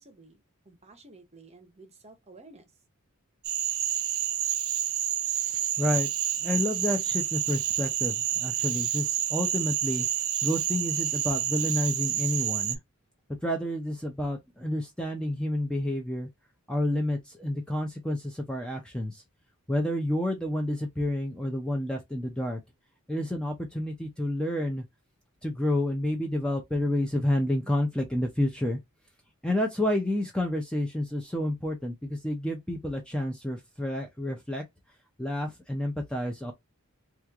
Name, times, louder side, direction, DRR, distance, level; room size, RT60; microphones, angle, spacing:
voice 1, 0.0-2.6, right 2 dB, 30° right, 0.8 m, -53 dB
Cricket / Frog, 3.4-12.8, right 11 dB, 65° right, 0.5 m, -29 dB
voice 2, 5.8-6.1 6.4-10.1 10.4-12.8 13.4-16.3 16.7-19.2 19.7-22.6 23.1-24.8 25.4-28.8 29.4-34.6 35.2-36.5, left 1 dB, 5° left, 0.5 m, -29 dB
3.0 x 2.4 x 3.4 m
head